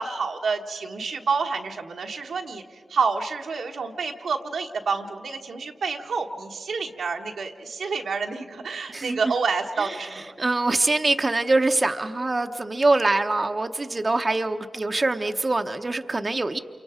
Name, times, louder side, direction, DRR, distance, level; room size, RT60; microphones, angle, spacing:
voice 1, 0.0-10.2, right 5 dB, 90° right, 2 dB, 1.2 m, -28 dB
voice 2, 10.4-16.6, right 2 dB, 45° right, 6 dB, 0.8 m, -24 dB
28.5 x 25.0 x 4.9 m, 2.2 s
cardioid pair, 40°, 0 cm